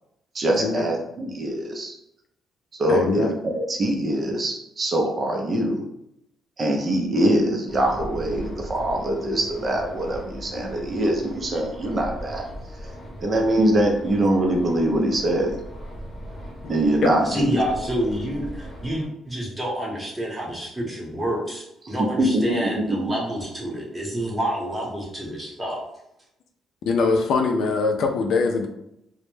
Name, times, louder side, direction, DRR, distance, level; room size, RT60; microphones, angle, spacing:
voice 1, 0.3-2.0 2.8-5.8 6.6-12.4 13.2-15.6 16.7-17.6 21.8-22.4, right 1 dB, 40° right, 1 dB, 0.5 m, -23 dB
voice 2, 2.9-3.3 16.6-16.7 17.0-17.1 26.9-28.7, left 4 dB, 75° left, 4 dB, 0.3 m, -22 dB
sound 1, 7.7-19.0, equal, 30° left, 0.8 m, -39 dB
voice 3, 17.2-25.8, right 1 dB, 15° right, -3 dB, 0.9 m, -28 dB
2.1 x 2.0 x 3.1 m, 0.81 s
cardioid pair, 90°, 0 cm